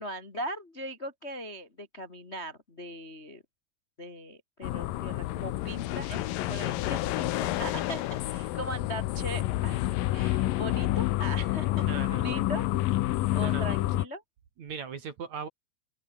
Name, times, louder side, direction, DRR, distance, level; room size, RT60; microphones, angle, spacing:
voice 1, 0.0-3.4 4.0-9.9 10.1-11.8 12.2-12.7 13.3-14.2, equal, 25° left, 1.7 m, -39 dB
sound 1, 4.6-14.0, left 16 dB, 75° left, 2.2 m, -29 dB
voice 2, 11.7-12.4 13.4-13.7 14.6-15.5, right 6 dB, 50° right, 3.2 m, -39 dB
open air
omnidirectional pair, 4.9 m